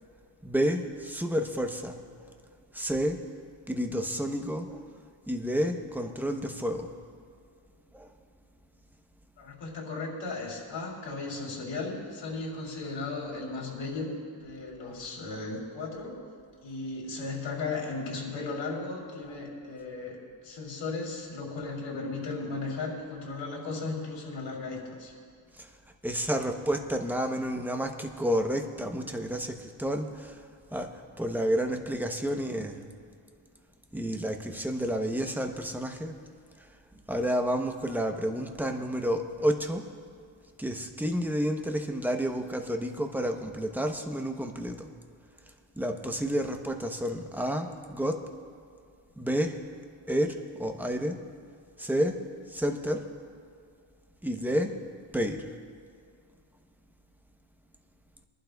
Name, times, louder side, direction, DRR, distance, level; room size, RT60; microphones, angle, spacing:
voice 1, 0.4-2.3 2.7-3.2 3.7-4.8 5.3-6.9 7.9-8.1 12.3-12.4 14.8-14.9 25.6-25.7 26.0-30.4 30.7-32.8 33.9-36.2 37.1-39.8 40.6-44.9 45.8-48.3 49.2-49.6 50.1-51.2 51.8-52.2 52.5-53.1 54.2-54.8 55.1-55.5, equal, 5° right, 4 dB, 0.8 m, -30 dB
voice 2, 9.4-16.2 16.6-25.1, left 3 dB, 75° left, -2 dB, 3.4 m, -36 dB
23.0 x 11.5 x 2.3 m, 2.2 s
wide cardioid pair, 120°, 45 cm